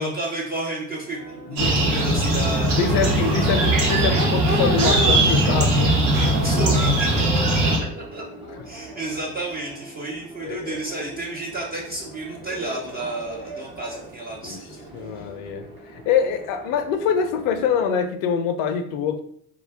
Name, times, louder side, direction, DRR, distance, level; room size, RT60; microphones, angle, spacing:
voice 1, 0.0-3.4 6.4-7.7 8.1-8.2 8.6-14.8, right 2 dB, 20° right, -3 dB, 0.4 m, -32 dB
Crowd / Race car auto racing / Accelerating revving vroom, 1.0-18.1, right 2 dB, 45° right, 1.0 m, -36 dB
sound 1, 1.6-7.8, right 1 dB, 75° right, 0.7 m, -20 dB
voice 2, 2.8-6.0 10.4-10.8 14.4-14.6 14.9-19.2, left 6 dB, 55° left, 8 dB, 0.5 m, -25 dB
2.4 x 2.2 x 3.3 m, 0.66 s
figure-of-eight pair, 60°, 45 cm